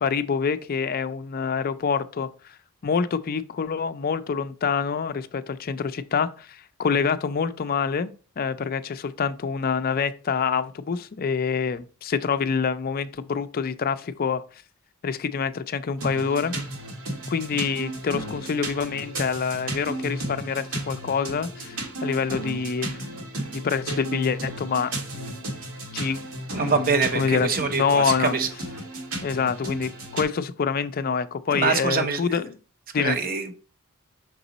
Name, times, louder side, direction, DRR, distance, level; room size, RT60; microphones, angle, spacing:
voice 1, 0.0-2.3 2.8-14.4 15.0-16.5 17.3-23.2 23.5-25.6 25.9-26.3 26.6-28.4 29.2-32.6 32.9-33.2, left 6 dB, 45° left, 0.4 m, -26 dB
sound 1, 16.0-30.2, right 1 dB, 90° right, 1.6 m, -34 dB
voice 2, 26.5-28.5 31.5-32.4 33.0-33.6, right 5 dB, 45° right, 0.8 m, -25 dB
6.0 x 4.0 x 4.0 m
head